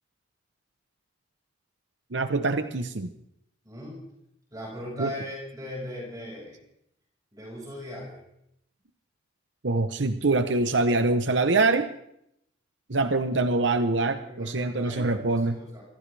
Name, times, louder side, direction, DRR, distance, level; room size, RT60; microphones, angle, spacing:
voice 1, 2.1-3.1 5.0-5.1 9.6-11.9 12.9-15.6, right 3 dB, 75° right, 9 dB, 0.9 m, -24 dB
voice 2, 3.6-4.0 4.5-6.6 7.3-8.2 14.2-15.8, left 1 dB, 20° right, -3 dB, 5.4 m, -39 dB
24.0 x 16.5 x 3.4 m, 0.75 s
head